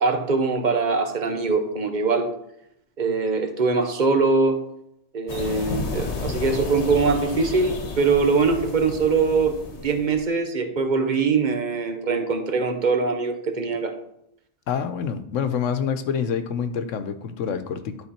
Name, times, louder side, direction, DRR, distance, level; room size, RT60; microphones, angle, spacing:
voice 1, 0.0-2.3 3.0-4.6 5.1-13.9, right 4 dB, 40° right, 6 dB, 1.0 m, -22 dB
sound 1, 5.3-10.2, left 3 dB, 65° left, 1.3 m, -32 dB
voice 2, 14.7-18.0, left 7 dB, 85° left, 10 dB, 1.1 m, -27 dB
11.5 x 3.9 x 4.3 m, 0.76 s
omnidirectional pair, 1.3 m